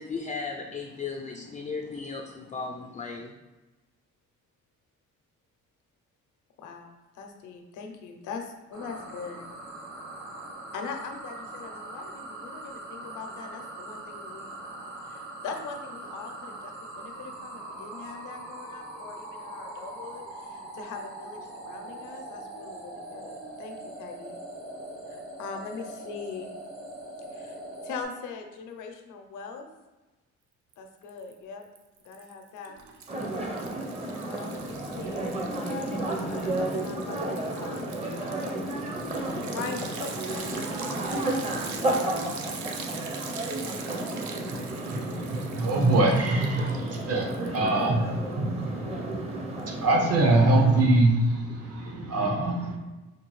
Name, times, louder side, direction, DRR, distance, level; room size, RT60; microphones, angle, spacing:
voice 1, 0.0-3.3, left 4 dB, 25° left, 3 dB, 0.3 m, -36 dB
voice 2, 6.6-9.5 10.7-14.5 15.0-24.4 25.1-26.5 27.3-29.7 30.8-31.6 32.0-32.8 34.2-38.5 39.5-40.7 41.1-41.8, left 5 dB, 80° left, 4 dB, 0.6 m, -41 dB
sound 1, 8.7-28.0, right 2 dB, 85° right, 1.0 m, -41 dB
Liquid, 30.7-31.3 31.6-47.8, right 5 dB, 70° right, 0.5 m, -42 dB
sound 2, 33.1-50.8, right 1 dB, 20° right, 0.6 m, -32 dB
voice 3, 44.5-52.8, right 2 dB, 55° right, 1 dB, 0.9 m, -24 dB
4.3 x 2.3 x 3.1 m, 1.2 s
cardioid pair, 90°, 30 cm